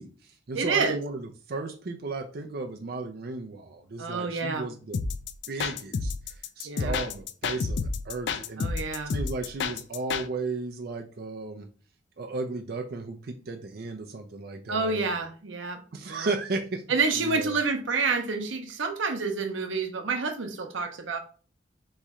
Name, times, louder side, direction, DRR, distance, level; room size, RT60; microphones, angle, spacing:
voice 1, 0.0-5.0 5.5-11.7 12.2-15.1 15.9-16.8 17.1-17.6, right 3 dB, 55° right, 3 dB, 0.5 m, -35 dB
voice 2, 0.5-1.0 4.0-4.7 6.6-6.9 8.6-9.1 14.7-15.8 16.1-16.3 16.9-21.2, right 4 dB, 85° right, 5 dB, 0.8 m, -28 dB
sound 1, 4.9-10.3, left 4 dB, 65° left, 0.4 m, -30 dB
4.1 x 3.1 x 3.6 m, 0.40 s
head